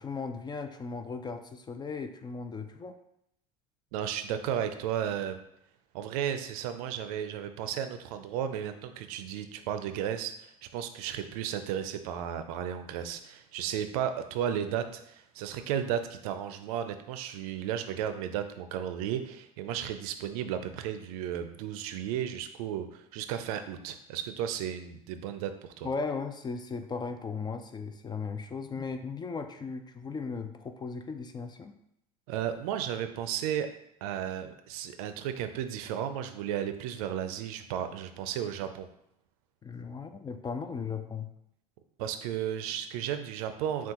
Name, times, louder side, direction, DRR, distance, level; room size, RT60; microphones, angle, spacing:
voice 1, 0.0-2.9 25.8-31.7 39.6-41.3, left 4 dB, 20° left, 8 dB, 0.4 m, -37 dB
voice 2, 3.9-5.4 5.9-25.9 32.3-33.7 34.0-38.9 42.0-43.9, right 9 dB, 75° right, 9 dB, 0.5 m, -34 dB
5.9 x 2.4 x 2.9 m, 0.78 s
hypercardioid pair, 85°, 19 cm